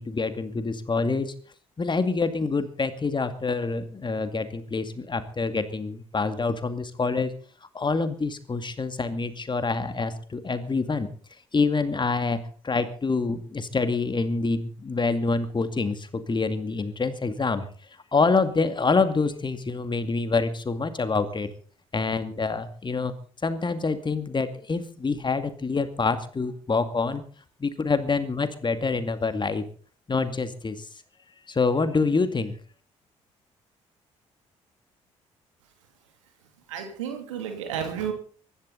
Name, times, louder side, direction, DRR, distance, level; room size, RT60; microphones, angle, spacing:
voice 1, 0.0-1.3 1.8-7.3 7.7-11.1 11.5-17.7 18.1-21.5 21.9-23.1 23.4-27.2 27.6-29.6 30.1-30.9 31.5-32.5, left 4 dB, 30° left, 10 dB, 2.3 m, -26 dB
voice 2, 36.7-38.1, right 8 dB, 80° right, 5 dB, 2.9 m, -32 dB
24.0 x 12.0 x 4.1 m, 0.42 s
figure-of-eight pair, 45°, 16 cm